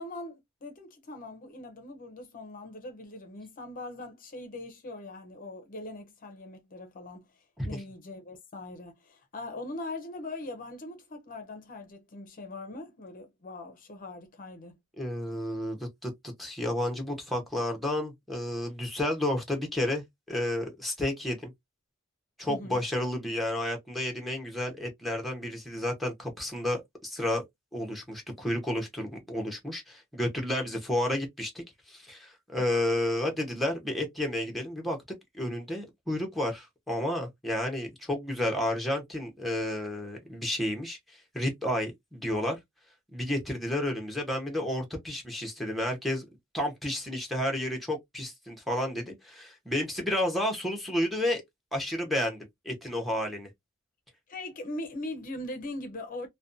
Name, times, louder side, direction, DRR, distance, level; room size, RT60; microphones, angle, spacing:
voice 1, 0.0-7.2 7.6-14.8 22.5-22.8 54.3-56.3, left 2 dB, 40° left, 0.5 m, -41 dB
voice 2, 15.0-21.5 22.4-27.4 27.7-35.0 35.3-41.0 41.3-42.6 43.1-46.3 46.5-51.4 51.7-53.5, left 1 dB, ahead, 0.7 m, -31 dB
2.5 x 2.1 x 2.5 m
head